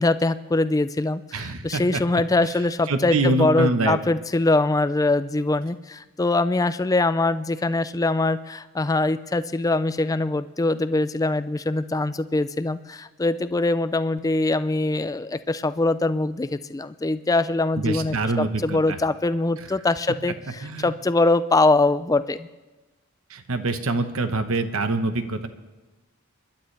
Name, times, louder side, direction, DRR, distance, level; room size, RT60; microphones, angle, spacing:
voice 1, 0.0-22.5, left 2 dB, 15° left, 13 dB, 0.3 m, -23 dB
voice 2, 1.3-2.0 2.4-2.5 2.9-4.0 17.8-19.0 20.6-20.9 23.3-25.5, right 2 dB, 65° right, 9 dB, 1.0 m, -25 dB
27.0 x 11.5 x 3.3 m, 1.1 s
head